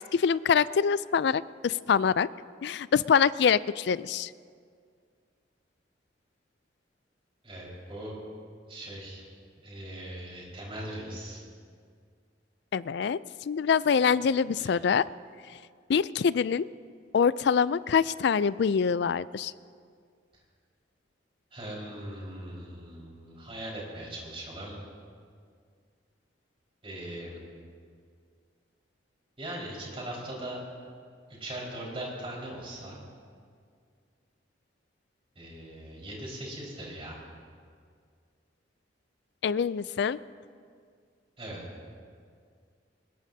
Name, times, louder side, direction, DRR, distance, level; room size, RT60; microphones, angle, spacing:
voice 1, 0.1-2.3 2.6-4.3 12.7-15.0 15.9-16.7 17.1-19.5 39.4-40.2, left 6 dB, 65° left, 18 dB, 0.4 m, -25 dB
voice 2, 7.4-8.2 8.7-9.2 9.6-11.4 14.6-14.8 21.5-24.8 26.8-27.4 29.4-30.6 31.3-33.0 35.3-37.2 41.4-41.6, right 1 dB, 30° right, -4 dB, 4.9 m, -40 dB
22.0 x 21.0 x 2.8 m, 2.1 s
head